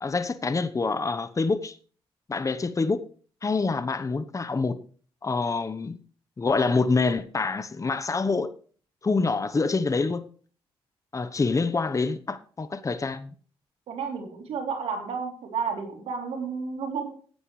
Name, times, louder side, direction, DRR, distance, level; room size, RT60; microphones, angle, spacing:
voice 1, 0.0-1.8 2.3-3.0 3.4-4.8 5.2-6.0 6.4-8.5 9.0-10.3 11.1-13.3, left 4 dB, 30° left, 1.0 m, -26 dB
voice 2, 13.9-17.1, right 5 dB, 80° right, 3.3 m, -31 dB
15.0 x 9.8 x 3.2 m
cardioid pair, 60°, 10 cm